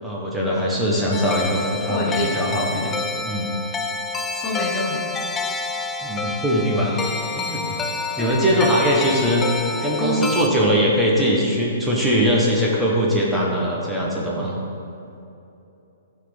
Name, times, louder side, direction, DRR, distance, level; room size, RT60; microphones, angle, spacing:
voice 1, 0.0-3.5 6.0-7.0 7.3-7.6 8.2-9.5 9.8-14.6, equal, 5° right, -5 dB, 1.4 m, -21 dB
sound 1, 1.1-10.5, left 3 dB, 15° left, 0.5 m, -28 dB
voice 2, 1.9-2.5 4.3-5.1 8.1-8.7 10.0-10.3, left 1 dB, 30° left, -1 dB, 1.1 m, -27 dB
12.0 x 4.3 x 4.0 m, 2.8 s
figure-of-eight pair, 120°, 0 cm